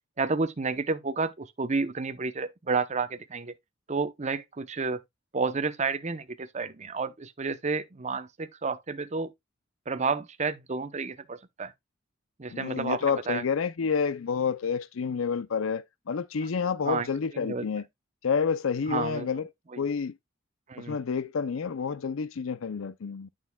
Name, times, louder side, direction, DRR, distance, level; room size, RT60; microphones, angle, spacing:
voice 1, 0.2-3.5 3.9-5.0 5.3-9.3 9.9-11.7 12.4-13.4 16.9-17.1 17.3-17.7 18.9-19.3 19.7-19.8 20.7-21.0, right 4 dB, 35° right, 0.7 m, -30 dB
voice 2, 12.5-17.9 18.2-19.5 19.8-20.2 20.8-23.3, left 6 dB, 85° left, 0.5 m, -29 dB
9.3 x 6.3 x 2.3 m
head